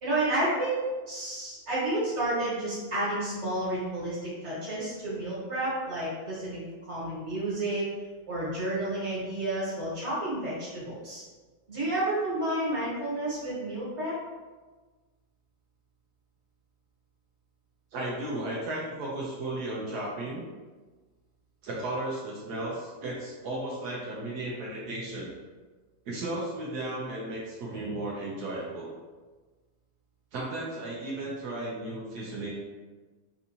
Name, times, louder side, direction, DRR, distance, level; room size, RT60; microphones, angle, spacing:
voice 1, 0.0-7.9 8.3-11.2 11.7-14.2, right 1 dB, 45° right, -9 dB, 1.9 m, -31 dB
voice 2, 17.9-20.4 21.6-25.3 26.0-28.9 30.3-32.5, right 1 dB, 85° right, -5 dB, 1.3 m, -34 dB
4.5 x 2.7 x 2.6 m, 1.3 s
omnidirectional pair, 1.6 m